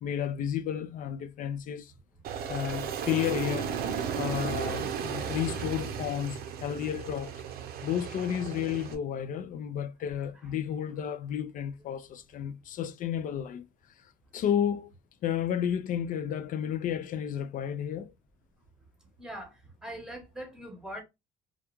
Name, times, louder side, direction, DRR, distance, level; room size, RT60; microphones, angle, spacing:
voice 1, 0.0-1.9 2.5-3.7 4.2-7.3 7.8-13.7 14.3-14.9 15.2-18.1, left 9 dB, 55° left, 0.4 m, -32 dB
Aircraft, 2.2-8.9, right 7 dB, 65° right, 0.6 m, -35 dB
voice 2, 19.2-21.0, right 1 dB, 5° right, 1.0 m, -42 dB
2.4 x 2.3 x 2.9 m
cardioid pair, 110°, 17 cm